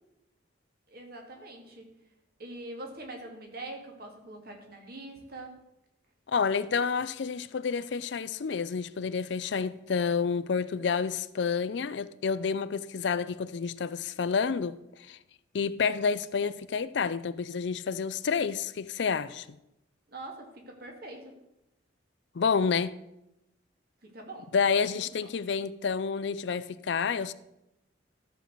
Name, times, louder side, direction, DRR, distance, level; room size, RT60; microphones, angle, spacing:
voice 1, 0.9-1.9 2.4-5.6 20.1-21.3 24.0-24.5 24.9-25.1, right 2 dB, 50° right, 2.1 m, -43 dB
voice 2, 6.3-15.2 15.5-19.5 22.3-23.0 24.5-27.3, left 5 dB, 60° left, 0.4 m, -29 dB
13.0 x 4.7 x 6.7 m
head